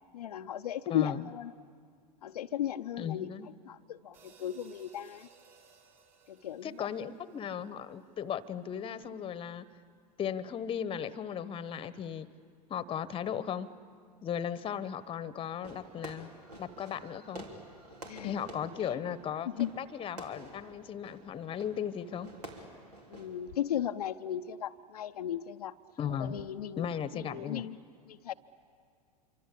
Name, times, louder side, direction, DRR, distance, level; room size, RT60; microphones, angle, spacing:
voice 1, 0.1-1.5 2.2-3.3 3.7-5.3 6.3-6.9 18.1-18.4 19.6-19.7 23.1-25.7 26.2-26.9 27.1-27.8 28.1-28.3, left 10 dB, 75° left, 7 dB, 0.6 m, -36 dB
voice 2, 0.9-1.3 3.0-3.5 6.6-9.7 10.2-12.3 12.7-13.7 14.2-16.3 16.6-17.5 18.2-22.3 26.0-26.4 26.8-27.7, left 8 dB, 25° left, 16 dB, 1.0 m, -36 dB
sound 1, 4.1-8.5, right 5 dB, 40° right, 6.2 m, -62 dB
Fireworks, 15.6-23.7, right 1 dB, 80° right, 3.4 m, -50 dB
27.0 x 24.5 x 8.5 m, 2.2 s
figure-of-eight pair, 90°, 20 cm